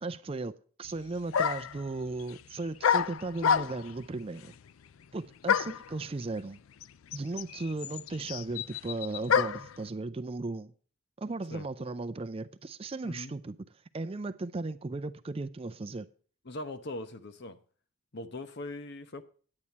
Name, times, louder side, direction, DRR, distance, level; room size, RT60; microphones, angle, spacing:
voice 1, 0.0-0.5 0.8-4.5 5.1-6.6 7.1-10.7 11.2-13.6 13.9-16.1, right 3 dB, 30° right, 0.4 m, -36 dB
sound 1, 0.8-0.9 1.3-1.8 2.8-4.0 5.5-5.9 6.8-6.9 7.1-9.7, left 7 dB, 90° left, 0.4 m, -28 dB
voice 2, 13.0-13.3 16.5-17.6 18.1-19.2, left 2 dB, 55° left, 0.9 m, -40 dB
9.7 x 9.1 x 4.1 m
head